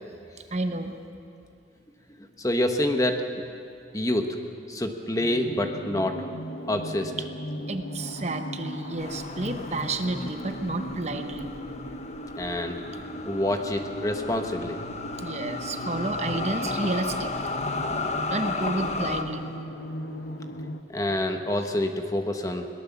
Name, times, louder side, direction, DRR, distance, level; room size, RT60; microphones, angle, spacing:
voice 1, 0.5-1.0 7.7-11.5 15.2-17.3 18.3-19.4, right 2 dB, 35° right, 7 dB, 1.0 m, -30 dB
voice 2, 2.4-3.4 3.9-4.4 4.7-6.2 6.7-7.1 12.4-12.9 13.3-14.8 18.7-18.8 20.9-22.7, left 1 dB, 20° left, 5 dB, 1.2 m, -27 dB
sound 1, 5.2-20.8, equal, 60° left, 1.1 m, -37 dB
sound 2, 9.0-19.2, left 3 dB, 35° left, 1.1 m, -34 dB
22.0 x 19.0 x 7.3 m, 2.6 s
head